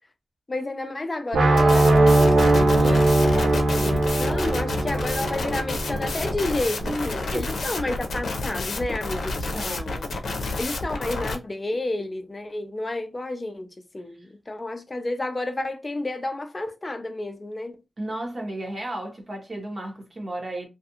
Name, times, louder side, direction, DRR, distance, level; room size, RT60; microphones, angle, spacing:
voice 1, 0.5-9.8 10.6-13.7 13.9-17.8, left 2 dB, 25° left, 0.4 m, -31 dB
sound 1, 1.3-7.3, right 2 dB, 90° right, 0.5 m, -20 dB
sound 2, 1.6-11.4, left 3 dB, 75° left, 0.6 m, -30 dB
voice 2, 6.8-7.6 9.5-10.1 18.0-20.7, right 1 dB, 35° right, 0.9 m, -33 dB
2.4 x 2.3 x 2.8 m
wide cardioid pair, 110°, 0 cm